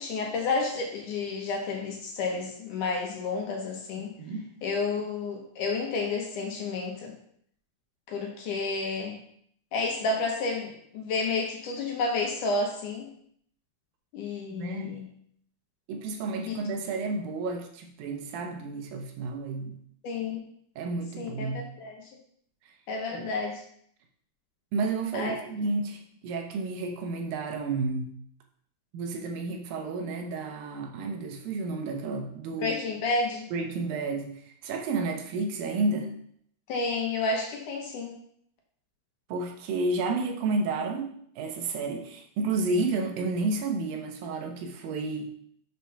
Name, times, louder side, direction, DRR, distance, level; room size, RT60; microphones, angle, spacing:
voice 1, 0.0-4.1 4.6-7.1 8.1-9.2 9.7-13.1 14.1-15.1 16.5-16.6 20.0-20.4 21.2-22.0 22.9-23.6 25.1-25.3 32.6-33.5 36.7-38.2, left 3 dB, 65° left, 0 dB, 2.5 m, -30 dB
voice 2, 14.5-15.0 15.9-19.8 20.8-21.6 23.1-23.3 24.7-28.2 28.9-32.8 33.5-36.1 39.3-41.1 41.4-45.3, right 3 dB, 75° right, 3 dB, 2.7 m, -31 dB
6.8 x 4.5 x 5.6 m, 0.65 s
omnidirectional pair, 4.2 m